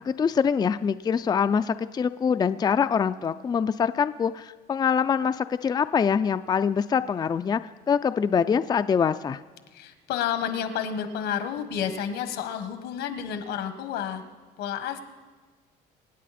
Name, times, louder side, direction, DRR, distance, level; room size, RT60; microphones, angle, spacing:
voice 1, 0.0-7.6 7.9-9.4, left 7 dB, 25° left, 11 dB, 0.4 m, -24 dB
voice 2, 9.7-14.2 14.6-15.0, left 8 dB, 85° left, 8 dB, 1.4 m, -30 dB
25.0 x 9.2 x 4.2 m, 1.4 s
cardioid pair, 110°, 17 cm